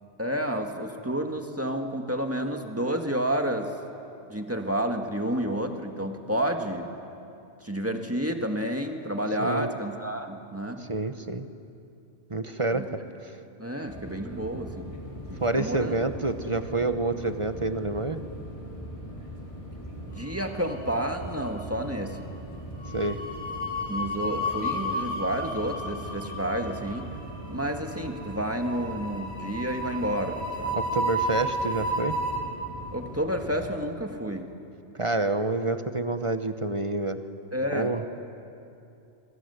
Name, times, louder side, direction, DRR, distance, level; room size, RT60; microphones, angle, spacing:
voice 1, 0.2-3.8 4.3-6.9 7.6-10.9 12.7-12.9 13.6-15.0 15.3-16.0 20.0-22.3 23.9-27.1 27.5-30.8 32.9-34.5 37.5-38.1, right 1 dB, 10° right, 4 dB, 1.7 m, -30 dB
voice 2, 9.4-9.7 10.9-11.5 12.3-13.3 15.4-18.2 22.9-23.2 30.7-32.2 35.0-37.2 37.7-38.0, right 2 dB, 25° right, 9 dB, 1.0 m, -28 dB
sound 1, 13.9-33.7, equal, 25° left, 4.2 m, -41 dB
sound 2, 20.3-21.1 21.4-21.6 22.8-32.4, equal, 80° left, 4.9 m, -32 dB
28.0 x 23.0 x 8.2 m, 2.7 s
omnidirectional pair, 1.4 m